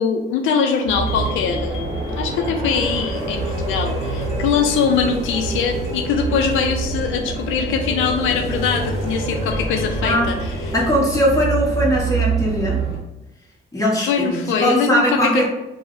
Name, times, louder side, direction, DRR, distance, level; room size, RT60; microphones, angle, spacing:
voice 1, 0.0-1.8 2.2-10.5 13.9-15.4, left 6 dB, 85° left, 4 dB, 0.4 m, -22 dB
sound 1, 0.8-13.0, right 3 dB, 30° right, 1.1 m, -26 dB
sound 2, 1.0-10.9, equal, 30° left, 1.4 m, -32 dB
voice 2, 10.7-12.8 13.7-15.4, equal, 15° left, -4 dB, 1.0 m, -20 dB
3.4 x 2.1 x 2.5 m, 0.95 s
cardioid pair, 90°, 20 cm